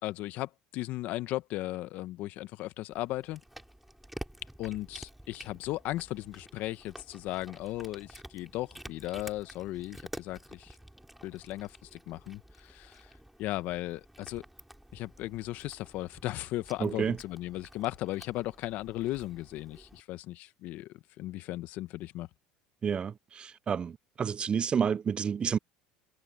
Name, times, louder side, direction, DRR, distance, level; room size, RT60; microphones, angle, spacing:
voice 1, 0.0-3.4 4.6-10.7 11.2-13.1 13.4-14.4 14.9-20.9 21.2-22.3, left 17 dB, 65° left, 1.4 m, -36 dB
Cat, 2.9-20.0, right 1 dB, 5° right, 4.2 m, -50 dB
voice 2, 16.8-17.2 22.8-23.9 24.2-25.6, right 7 dB, 30° right, 0.4 m, -29 dB
supercardioid pair, 85°, 3 cm